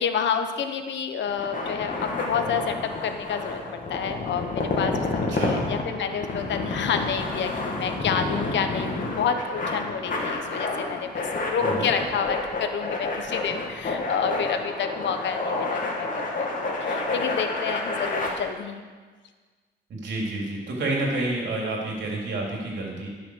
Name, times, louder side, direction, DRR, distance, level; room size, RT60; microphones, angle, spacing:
voice 1, 0.0-3.6 3.9-18.8, left 7 dB, 75° left, 7 dB, 1.0 m, -29 dB
sound 1, 1.3-18.3, left 3 dB, 45° left, 2.1 m, -29 dB
voice 2, 5.3-5.6 11.6-11.9 19.9-23.1, right 2 dB, 70° right, -2 dB, 3.2 m, -29 dB
12.0 x 6.6 x 6.3 m, 1.4 s
cardioid pair, 115°, 19 cm